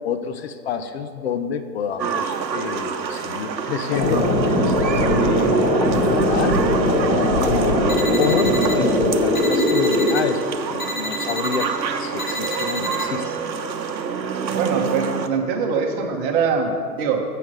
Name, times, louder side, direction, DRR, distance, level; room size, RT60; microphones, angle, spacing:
voice 1, 0.0-4.9 5.2-6.6 7.3-10.4 10.7-13.3, left 7 dB, 40° left, 9 dB, 0.6 m, -28 dB
sound 1, 2.0-15.3, right 6 dB, 85° right, 0.8 m, -27 dB
sound 2, 3.9-10.2, left 1 dB, 25° left, 1.5 m, -20 dB
sound 3, 7.9-8.8 9.3-10.2 10.8-11.7 12.2-13.0, left 1 dB, 55° left, 1.5 m, -30 dB
voice 2, 14.5-17.2, right 5 dB, 30° right, 2 dB, 1.3 m, -23 dB
7.1 x 6.7 x 6.3 m, 2.1 s
hypercardioid pair, 125°, 50 cm